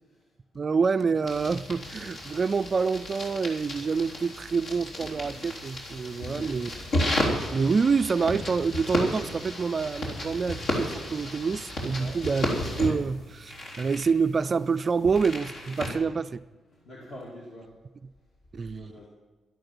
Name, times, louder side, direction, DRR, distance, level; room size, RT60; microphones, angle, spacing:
voice 1, 0.5-6.7 7.2-12.5 12.8-16.4 18.5-18.9, right 5 dB, 30° right, 13 dB, 0.3 m, -27 dB
sound 1, 1.3-15.9, left 1 dB, 75° left, 3.6 m, -33 dB
voice 2, 6.2-6.6 11.9-12.2 16.7-17.7 18.7-19.1, left 1 dB, 55° left, -3 dB, 2.5 m, -44 dB
12.5 x 12.0 x 6.1 m, 1.3 s
wide cardioid pair, 160°, 0 cm